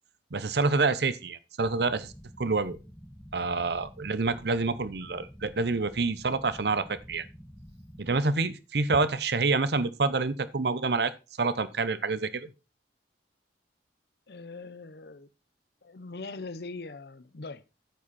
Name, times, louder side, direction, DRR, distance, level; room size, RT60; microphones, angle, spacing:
voice 1, 0.3-2.1 2.4-2.8 3.3-7.3 8.0-11.1 11.4-12.5, right 3 dB, 65° right, 0.7 m, -27 dB
sound 1, 1.6-8.2, equal, 5° left, 0.9 m, -49 dB
voice 2, 14.3-15.3 15.8-17.7, left 3 dB, 60° left, 0.6 m, -42 dB
9.2 x 7.6 x 4.2 m
head